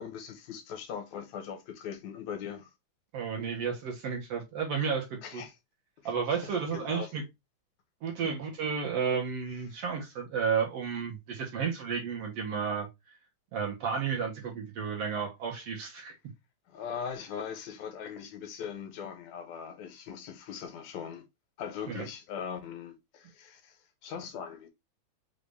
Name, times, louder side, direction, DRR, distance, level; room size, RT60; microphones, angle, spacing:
voice 1, 0.0-2.7 5.2-5.5 6.4-7.1 8.2-8.3 16.7-21.2 21.6-23.8 24.0-24.7, left 7 dB, 80° left, 2.0 m, -40 dB
voice 2, 3.1-5.4 6.1-7.2 8.0-12.9 13.5-16.1 21.9-22.0, right 6 dB, 65° right, 1.7 m, -32 dB
5.2 x 2.5 x 3.3 m
omnidirectional pair, 3.3 m